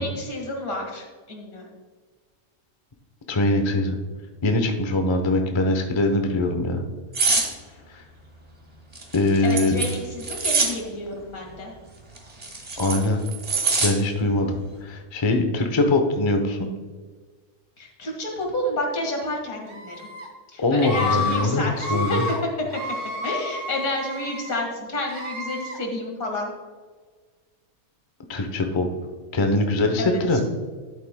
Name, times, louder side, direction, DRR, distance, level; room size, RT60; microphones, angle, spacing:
voice 1, 0.0-1.7 9.4-11.7 17.8-20.1 20.5-22.2 23.2-26.5 30.0-30.2, left 1 dB, 75° left, 1 dB, 2.2 m, -30 dB
voice 2, 3.3-4.0 4.4-6.8 9.1-9.8 12.8-13.2 13.8-16.7 20.6-22.2 28.3-28.9 29.3-30.4, left 2 dB, 25° left, 4 dB, 0.7 m, -22 dB
sound 1, 7.1-7.5 8.9-10.7 12.2-13.9 14.3-14.6, right 4 dB, 25° right, 1.5 m, -24 dB
Screaming, 19.7-20.3 20.8-21.4 21.7-22.4 22.7-24.6 25.1-25.8, left 3 dB, 60° right, 1.9 m, -30 dB
11.5 x 8.2 x 2.2 m, 1.4 s
omnidirectional pair, 1.5 m